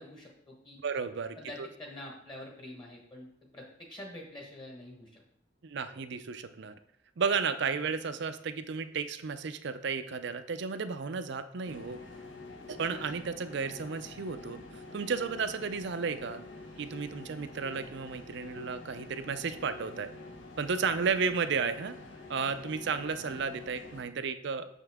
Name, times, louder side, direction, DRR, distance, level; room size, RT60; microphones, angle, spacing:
voice 1, 0.0-0.8 1.4-3.3 3.5-5.2, left 1 dB, 25° left, -1 dB, 1.2 m, -46 dB
voice 2, 0.8-1.7 5.6-6.7 7.2-12.0 12.7-14.6 14.9-16.4 16.8-20.1 20.6-22.0 22.3-24.7, right 5 dB, 65° right, 11 dB, 0.5 m, -33 dB
sound 1, 11.6-24.0, left 2 dB, 80° left, 1.2 m, -47 dB
6.8 x 5.5 x 3.5 m, 0.75 s
head